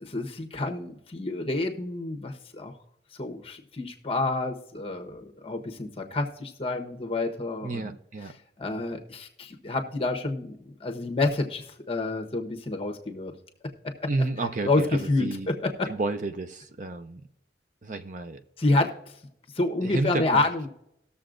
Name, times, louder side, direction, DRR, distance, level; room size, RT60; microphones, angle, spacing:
voice 1, 0.0-2.7 3.2-7.9 8.6-13.3 14.0-14.1 14.6-15.9 18.6-18.9 19.5-20.7, left 2 dB, 30° left, 4 dB, 1.1 m, -28 dB
voice 2, 7.6-8.3 14.1-15.5 15.9-17.2 17.8-18.4 19.8-20.5, right 3 dB, 45° right, 9 dB, 0.6 m, -31 dB
19.0 x 7.0 x 2.5 m, 0.79 s
head